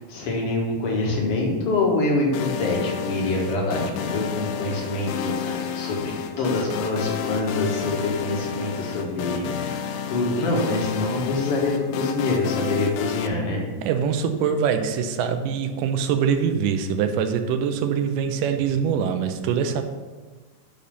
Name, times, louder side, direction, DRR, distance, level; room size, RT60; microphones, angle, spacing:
voice 1, 0.0-9.8 10.1-13.6, left 2 dB, 50° left, -2 dB, 2.3 m, -25 dB
sound 1, 2.3-13.3, left 7 dB, 90° left, 2.3 m, -30 dB
voice 2, 13.8-19.9, right 7 dB, 85° right, 7 dB, 2.3 m, -24 dB
10.5 x 4.2 x 5.7 m, 1.3 s
omnidirectional pair, 3.7 m